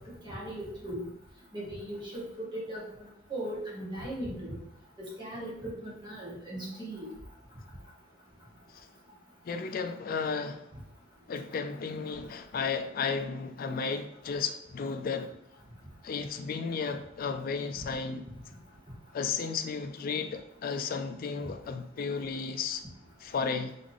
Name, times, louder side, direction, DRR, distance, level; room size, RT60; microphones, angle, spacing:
voice 1, 0.2-1.0 1.5-2.8 3.3-4.6 5.0-7.1, right 1 dB, 25° right, 1.6 m, -38 dB
voice 2, 9.4-10.6 11.3-15.4 16.0-18.2 19.1-22.8 23.2-23.7, left 5 dB, 50° left, 0.4 m, -33 dB
4.1 x 3.5 x 3.4 m
head